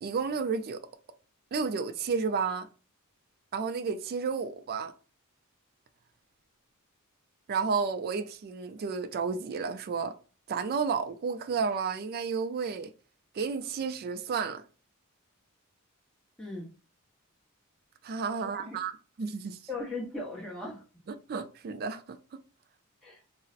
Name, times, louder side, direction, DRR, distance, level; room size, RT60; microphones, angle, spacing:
voice 1, 0.0-0.9 1.5-2.7 3.5-4.9 7.5-10.1 10.5-12.9 13.3-14.6 18.0-19.6 21.3-22.4, right 5 dB, 45° right, 0.3 m, -32 dB
voice 2, 18.3-18.8 19.7-20.8 23.0-23.2, left 2 dB, 5° left, 0.8 m, -38 dB
3.9 x 2.0 x 2.4 m
head